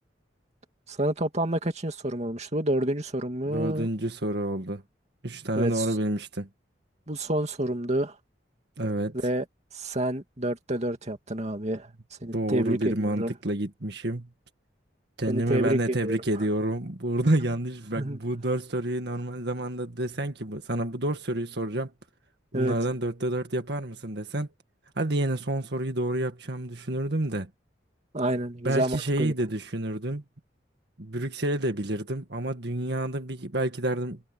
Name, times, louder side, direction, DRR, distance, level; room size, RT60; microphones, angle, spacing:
voice 1, 0.9-3.9 5.6-5.9 7.1-8.1 9.1-9.5 9.7-11.9 12.2-13.3 15.3-16.2 18.0-18.2 22.5-22.7 28.1-29.3, right 1 dB, 35° right, 2.4 m, -28 dB
voice 2, 3.5-4.8 5.2-6.5 8.8-9.3 12.3-14.3 15.2-21.9 22.5-24.5 25.0-27.5 28.6-30.2 31.0-34.2, right 1 dB, 60° right, 1.9 m, -29 dB
head